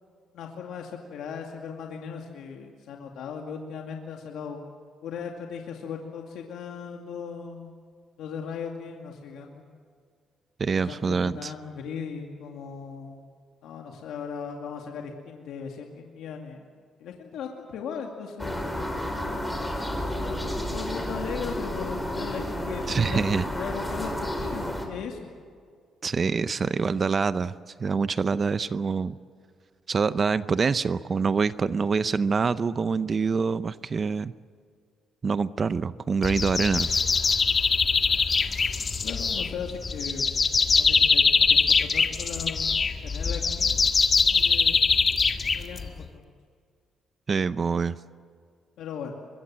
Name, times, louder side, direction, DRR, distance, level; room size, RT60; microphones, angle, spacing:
voice 1, 0.3-4.6 5.0-7.8 8.2-9.6 10.8-13.2 13.6-16.6 17.0-18.6 20.2-25.3 39.0-40.3 40.8-43.8 44.2-44.8 45.5-46.3 48.8-49.1, left 6 dB, 80° left, 2 dB, 2.3 m, -38 dB
voice 2, 10.6-11.5 22.9-23.5 26.0-27.5 27.8-29.2 29.9-34.3 35.2-37.0 47.3-48.0, right 5 dB, 40° right, 15 dB, 0.6 m, -25 dB
sound 1, 18.4-24.9, left 1 dB, 5° left, 4.9 m, -31 dB
sound 2, 36.2-46.1, left 5 dB, 40° left, 1.7 m, -23 dB
24.0 x 22.5 x 7.6 m, 2.1 s
cardioid pair, 90°, 0 cm